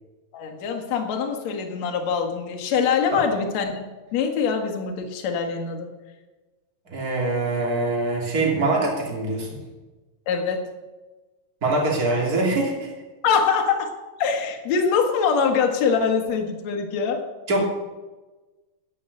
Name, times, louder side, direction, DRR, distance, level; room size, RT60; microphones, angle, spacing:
voice 1, 0.3-5.9 10.3-10.7 13.2-13.9 14.2-17.2, left 6 dB, 55° left, 3 dB, 2.4 m, -24 dB
voice 2, 6.9-9.5 11.6-12.9 17.5-17.6, right 2 dB, 25° right, -2 dB, 2.9 m, -23 dB
10.5 x 9.1 x 8.4 m, 1.2 s
omnidirectional pair, 4.7 m